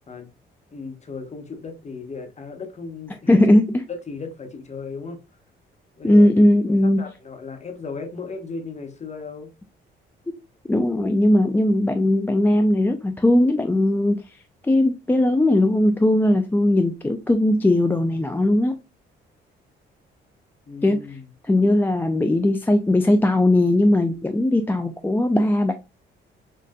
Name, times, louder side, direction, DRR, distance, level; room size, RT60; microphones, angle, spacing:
voice 1, 0.7-3.4 3.9-5.2 6.0-6.3 7.0-9.5 20.7-21.3, left 4 dB, 35° left, 1.1 m, -36 dB
voice 2, 3.3-3.8 6.0-7.1 10.7-14.2 14.6-18.8 20.8-21.0 21.5-25.7, left 1 dB, 10° left, 0.4 m, -18 dB
6.4 x 2.5 x 2.2 m
cardioid pair, 90°, 20 cm